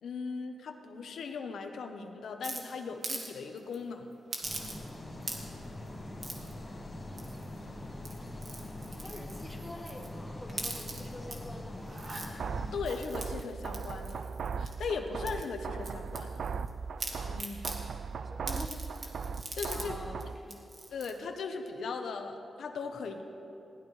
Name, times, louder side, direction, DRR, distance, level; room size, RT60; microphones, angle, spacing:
voice 1, 0.0-4.1 12.7-14.2 14.6-16.4 17.1-17.7 19.5-20.0 20.9-23.2, left 5 dB, 80° left, 5 dB, 1.1 m, -38 dB
sound 1, 2.4-3.3 3.6-3.8 4.3-4.9 5.2-5.6 6.2-6.5 7.2-7.6 7.9-10.1 10.5-11.4 11.8-12.3 12.8-14.9 15.3-16.7 17.0-17.8 18.5-19.9 20.2-20.3 20.5-21.1, right 2 dB, 40° right, 1.9 m, -41 dB
sound 2, 4.4-12.8, left 1 dB, 30° left, 2.2 m, -43 dB
voice 2, 6.6-8.2 9.0-12.1 18.2-19.2 19.7-20.6, left 1 dB, 10° left, 0 dB, 1.5 m, -47 dB
sound 3, 12.4-20.4, right 5 dB, 60° right, 0.4 m, -38 dB
21.5 x 16.5 x 3.4 m, 2.8 s
wide cardioid pair, 165°, 0 cm